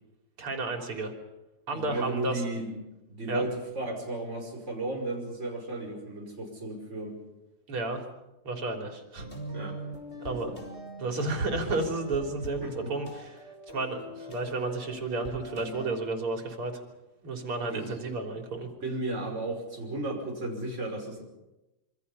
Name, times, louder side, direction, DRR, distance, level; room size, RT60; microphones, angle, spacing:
voice 1, 0.4-1.1 1.7-2.4 3.3-3.4 7.7-8.0 8.4-9.3 10.2-10.5 11.0-13.5 13.7-16.7 17.2-18.7, right 2 dB, 85° right, 2 dB, 4.2 m, -32 dB
voice 2, 1.7-2.7 3.1-7.1 9.5-9.8 10.4-10.6 12.7-12.9 17.7-17.9 18.8-21.2, right 2 dB, 30° right, 0 dB, 5.8 m, -34 dB
sound 1, 9.2-16.2, equal, 30° left, 4.7 m, -43 dB
26.5 x 25.0 x 5.6 m, 1.0 s
omnidirectional pair, 2.4 m